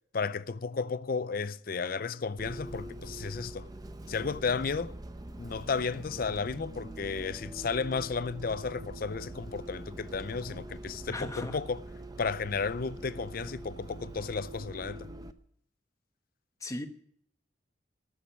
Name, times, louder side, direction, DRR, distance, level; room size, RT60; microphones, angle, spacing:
voice 1, 0.1-3.7 4.1-4.9 5.4-11.8 12.2-15.1, left 5 dB, 50° left, 0.5 m, -33 dB
Bus, 2.4-15.3, right 1 dB, 20° right, 0.7 m, -44 dB
voice 2, 11.1-11.6 16.6-16.9, left 1 dB, 15° left, 1.0 m, -37 dB
13.5 x 6.5 x 10.0 m
head